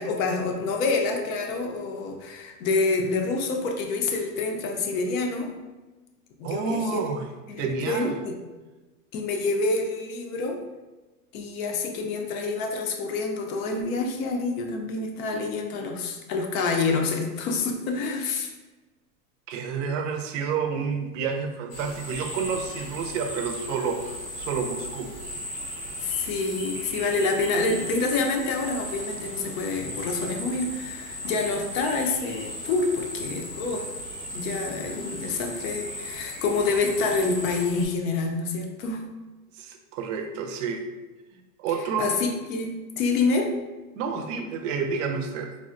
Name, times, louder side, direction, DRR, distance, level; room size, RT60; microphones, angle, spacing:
voice 1, 0.0-5.5 6.4-7.1 7.5-8.4 9.1-10.6 11.3-18.5 26.0-33.9 34.3-39.0 42.0-43.6, left 3 dB, 65° left, 3 dB, 0.6 m, -27 dB
voice 2, 6.4-7.3 7.6-8.2 19.5-25.1 39.5-40.9 41.6-42.1 43.9-45.5, right 5 dB, 55° right, 5 dB, 0.5 m, -29 dB
sound 1, 21.7-37.8, equal, 20° left, 0.6 m, -37 dB
3.4 x 2.0 x 2.4 m, 1.2 s
supercardioid pair, 145°, 45 cm